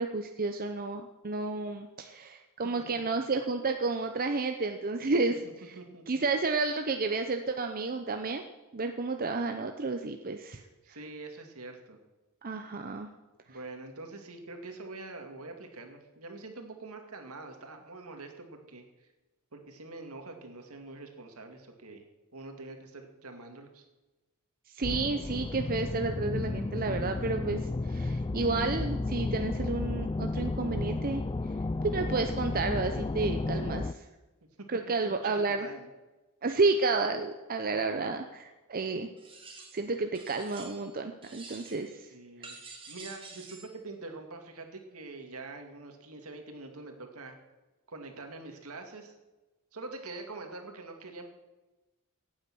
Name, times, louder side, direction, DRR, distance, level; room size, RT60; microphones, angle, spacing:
voice 1, 0.0-5.4 5.7-5.8 6.1-8.4 8.7-10.6 12.4-13.1 24.7-31.2 31.9-33.9 34.7-35.7 36.4-39.1 39.7-42.1, right 3 dB, 40° right, 5 dB, 0.8 m, -31 dB
voice 2, 10.8-12.0 13.5-18.8 19.5-22.0 22.3-23.8 35.0-35.9 37.7-37.8 42.1-42.6 42.9-47.4 47.9-49.1 49.7-51.3, right 3 dB, 75° right, 4 dB, 2.3 m, -45 dB
sound 1, 24.8-33.9, left 2 dB, 20° left, 0.3 m, -33 dB
sound 2, 39.2-39.9 40.1-40.9 41.2-41.9 42.4-43.8, right 4 dB, 25° right, 2.3 m, -48 dB
17.0 x 8.8 x 6.2 m, 1.1 s
head